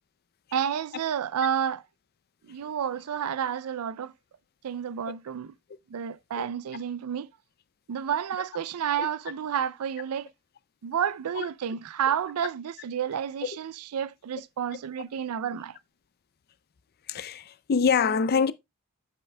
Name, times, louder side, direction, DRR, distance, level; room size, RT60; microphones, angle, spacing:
voice 1, 0.5-1.8 2.4-4.1 4.6-5.5 5.9-7.3 7.9-10.3 10.8-15.8, right 8 dB, 75° right, 0.4 m, -30 dB
voice 2, 17.1-18.5, left 6 dB, 45° left, 0.4 m, -24 dB
8.1 x 8.0 x 2.2 m
head